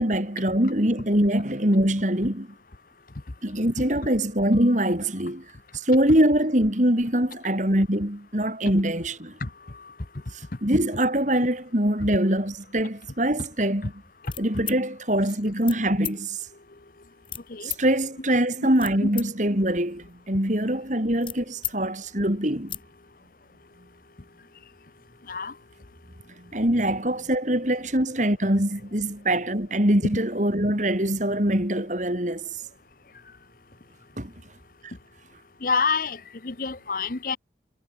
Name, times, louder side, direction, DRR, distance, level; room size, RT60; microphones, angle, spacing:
voice 1, 0.0-2.5 3.4-5.4 5.8-9.3 10.6-13.9 14.4-16.4 17.6-22.8 26.5-32.5 34.2-34.3 34.8-34.9, right 1 dB, 45° right, 4.8 m, -23 dB
sound 1, 14.3-14.8 15.6-15.8 16.0-16.2 17.2-17.8 18.5-19.3 19.6-21.8 22.1-22.2 22.5-22.8, left 10 dB, 30° left, 6.4 m, -36 dB
voice 2, 35.6-36.2 36.4-37.4, left 5 dB, 50° left, 1.1 m, -27 dB
head